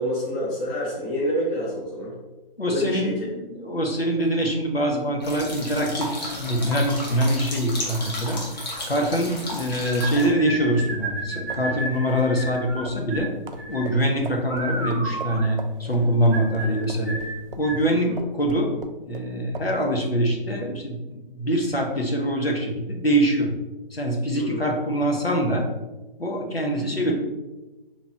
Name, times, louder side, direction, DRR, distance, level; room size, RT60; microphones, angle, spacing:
voice 1, 0.0-2.1 2.7-3.1 16.6-16.7 17.8-18.2 24.4-24.6, equal, 10° left, -8 dB, 0.6 m, -28 dB
voice 2, 2.6-8.4 8.9-13.3 13.7-17.2 17.6-18.7 19.0-21.0 21.3-23.5 23.9-25.6 26.2-27.1, equal, 90° left, 1 dB, 0.9 m, -24 dB
sound 1, 5.2-10.3, left 1 dB, 45° left, 1.4 m, -33 dB
sound 2, 9.8-17.9, right 2 dB, 30° right, 0.8 m, -33 dB
sound 3, 11.3-17.9 18.2-19.3 19.5-19.7, right 4 dB, 65° right, 0.5 m, -40 dB
5.2 x 3.0 x 2.8 m, 1.1 s
figure-of-eight pair, 140°, 29 cm